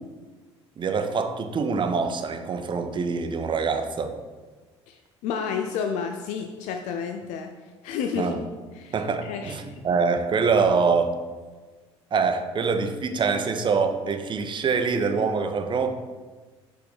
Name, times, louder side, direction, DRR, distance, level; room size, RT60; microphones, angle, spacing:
voice 1, 0.8-4.1 8.2-8.4 8.9-11.1 12.1-15.9, right 5 dB, 35° right, 7 dB, 0.7 m, -24 dB
voice 2, 4.9-7.5 7.8-8.3 8.8-9.8, left 6 dB, 55° left, 5 dB, 0.5 m, -31 dB
6.5 x 5.1 x 4.1 m, 1.3 s
figure-of-eight pair, 55°, 15 cm